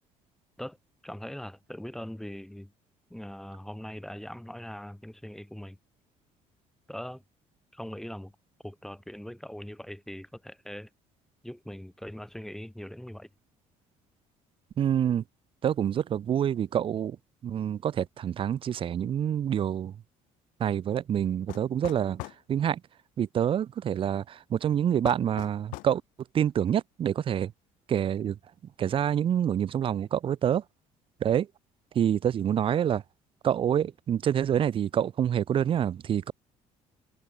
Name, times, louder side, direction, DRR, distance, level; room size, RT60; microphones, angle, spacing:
voice 1, 1.0-2.7 3.1-5.8 6.9-7.2 7.7-8.3 8.6-10.9 11.4-13.3, equal, 5° left, 1.6 m, -41 dB
voice 2, 14.8-15.2 15.6-17.2 17.4-19.9 20.6-22.8 23.2-26.0 26.3-27.5 27.9-28.4 28.8-30.6 31.2-31.5 31.9-33.0 33.4-36.3, right 9 dB, 40° right, 1.2 m, -27 dB
sound 1, 21.5-22.4 25.0-26.0, left 22 dB, 90° left, 2.9 m, -40 dB
cardioid pair, 135°, 13 cm